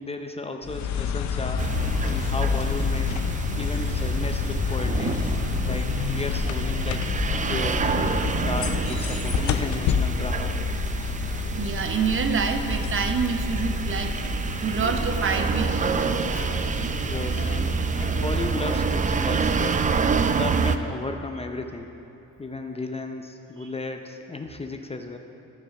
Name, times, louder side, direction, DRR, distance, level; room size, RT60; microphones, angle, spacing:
voice 1, 0.0-1.7 2.1-3.2 3.6-5.2 5.6-7.1 7.5-10.6 17.0-17.8 18.1-19.9 20.3-22.0 22.4-25.2, left 3 dB, 20° left, 5 dB, 0.6 m, -34 dB
sound 1, 0.6-19.1, left 8 dB, 70° left, 0.6 m, -29 dB
sound 2, 1.6-20.8, right 5 dB, 25° right, 0.5 m, -27 dB
voice 2, 11.6-14.2 14.6-16.3 23.6-23.7, right 6 dB, 45° right, 6 dB, 0.9 m, -27 dB
13.5 x 5.6 x 5.3 m, 2.9 s
cardioid pair, 90°, 30 cm